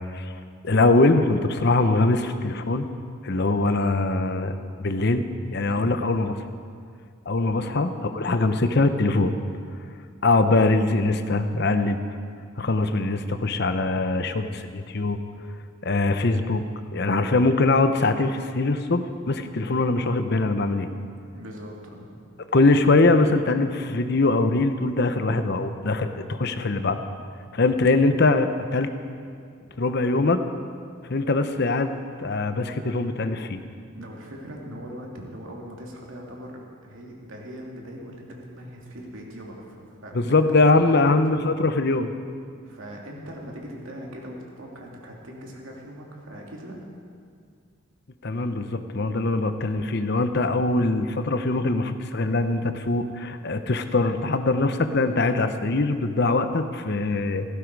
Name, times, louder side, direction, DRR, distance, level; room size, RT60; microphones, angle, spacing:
voice 1, 0.6-2.9 3.2-4.5 4.8-5.2 5.5-6.4 7.3-9.3 10.2-12.0 12.6-15.2 15.8-16.6 16.9-20.9 22.5-27.0 27.5-28.9 29.8-30.4 31.1-33.7 40.1-42.1 48.2-57.5, left 2 dB, 50° left, 9 dB, 0.8 m, -22 dB
voice 2, 21.3-22.1 33.9-41.5 42.6-46.8, equal, 70° right, -1 dB, 2.8 m, -40 dB
17.0 x 15.5 x 4.8 m, 2.2 s
head